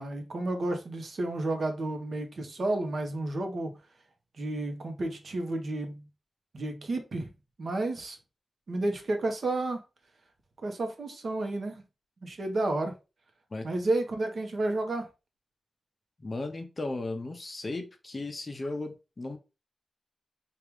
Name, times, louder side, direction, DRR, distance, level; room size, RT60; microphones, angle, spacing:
voice 1, 0.0-3.8 4.4-6.0 6.5-7.3 7.6-8.2 8.7-9.8 10.6-11.8 12.2-12.9 13.6-15.1, right 2 dB, 55° right, 0.9 m, -31 dB
voice 2, 16.2-19.4, left 2 dB, 30° left, 0.6 m, -36 dB
4.6 x 2.5 x 3.4 m
wide cardioid pair, 145°, 0 cm